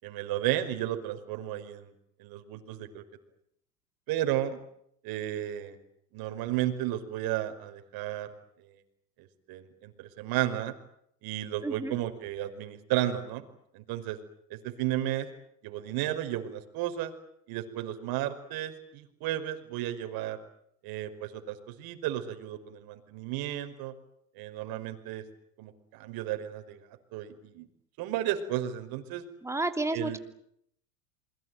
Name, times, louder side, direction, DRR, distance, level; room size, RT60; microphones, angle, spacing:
voice 1, 0.0-1.9 2.2-3.0 4.1-4.6 5.0-5.8 6.1-8.3 9.5-10.7 11.2-13.4 13.7-14.2 14.5-15.3 15.6-17.1 17.5-20.4 20.8-23.9 24.4-25.2 25.6-26.8 27.1-27.7 28.0-29.2 29.9-30.2, right 13 dB, 50° right, 8 dB, 5.3 m, -33 dB
voice 2, 11.6-12.0 29.4-30.2, right 2 dB, 5° right, 7 dB, 3.0 m, -31 dB
28.0 x 22.5 x 9.3 m, 0.72 s
hypercardioid pair, 110°, 47 cm